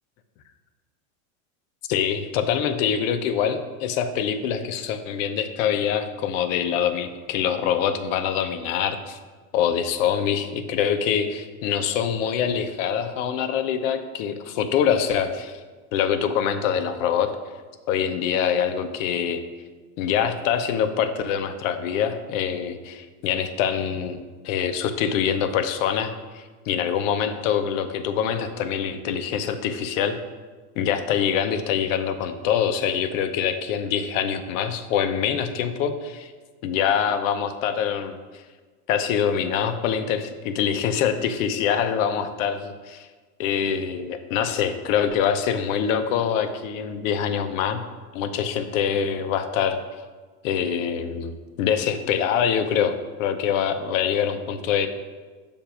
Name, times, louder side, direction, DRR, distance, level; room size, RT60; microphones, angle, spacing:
voice 1, 1.9-9.2 9.5-15.6 15.9-17.3 17.9-19.4 20.0-30.2 30.8-36.3 36.6-38.2 38.9-43.1 43.4-47.8 48.1-49.8 50.4-54.9, left 8 dB, 60° left, 8 dB, 0.7 m, -24 dB
6.8 x 2.7 x 5.7 m, 1.4 s
supercardioid pair, 140°, 44 cm